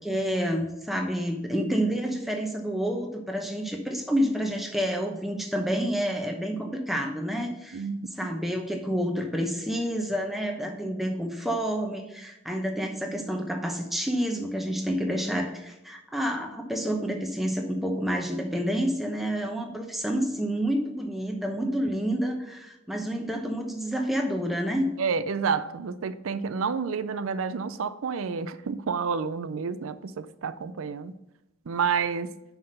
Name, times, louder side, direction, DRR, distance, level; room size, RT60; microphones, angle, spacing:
voice 1, 0.0-7.8 8.2-24.9, equal, ahead, 0.8 m, -29 dB
voice 2, 7.7-8.1 25.0-31.1 31.7-32.3, right 5 dB, 80° right, 0.5 m, -29 dB
5.8 x 5.7 x 6.5 m
head